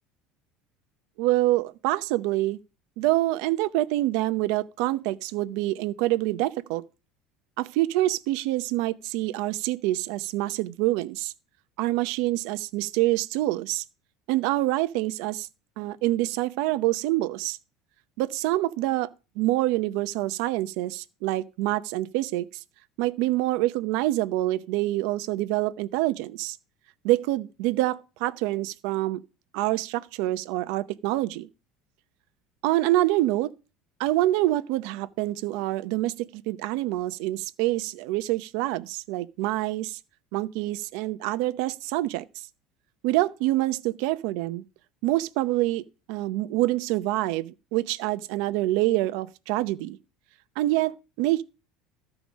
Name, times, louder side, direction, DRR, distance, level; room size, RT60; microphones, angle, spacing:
voice 1, 1.2-2.6 3.0-6.8 7.6-11.3 11.8-13.8 14.3-15.5 15.8-17.6 18.2-19.1 19.4-22.5 23.0-26.6 27.0-29.2 29.5-31.5 32.6-33.5 34.0-40.0 40.3-42.2 43.0-44.6 45.0-45.8 46.1-50.0 50.6-51.4, right 17 dB, 70° right, 0.7 m, -26 dB
13.5 x 4.9 x 6.2 m
cardioid pair, 145°, 0 cm